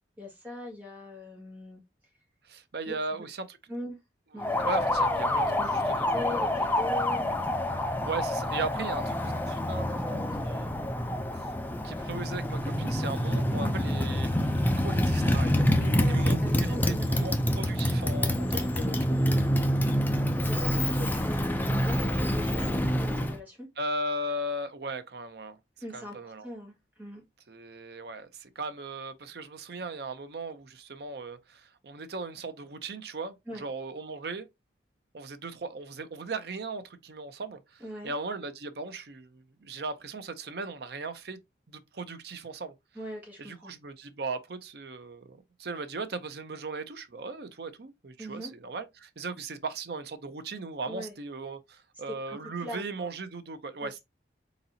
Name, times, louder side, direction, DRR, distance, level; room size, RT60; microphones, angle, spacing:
voice 1, 0.2-1.8 2.9-3.2 3.7-4.0 4.3-4.6 5.6-7.3 8.7-8.9 15.7-17.3 18.3-19.4 20.4-23.7 25.8-27.2 33.5-33.6 37.8-38.1 42.9-43.7 48.2-48.5 50.9-51.1 52.0-53.1 53.8-53.9, left 1 dB, 10° right, 1.7 m, -41 dB
voice 2, 2.4-3.6 4.6-6.1 6.5-6.7 8.0-9.0 9.5-10.7 11.3-11.5 11.8-15.6 16.1-18.7 23.8-25.6 25.9-26.5 27.5-34.5 35.1-41.4 41.7-42.7 43.4-54.0, right 2 dB, 55° right, 0.6 m, -37 dB
Motorcycle, 4.4-23.4, equal, 10° left, 0.4 m, -27 dB
4.0 x 3.9 x 2.7 m
head